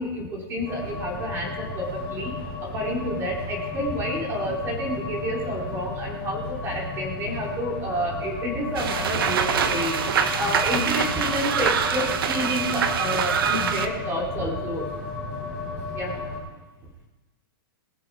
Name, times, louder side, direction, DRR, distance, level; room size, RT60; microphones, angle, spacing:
voice 1, 0.0-2.3 2.6-14.9 15.9-16.1, equal, 20° right, -2 dB, 3.1 m, -29 dB
sound 1, 0.6-16.4, left 3 dB, 15° left, 4.4 m, -33 dB
sound 2, 8.8-13.9, right 7 dB, 70° right, 1.1 m, -25 dB
20.0 x 7.5 x 4.7 m, 1.2 s
hypercardioid pair, 165°, 12 cm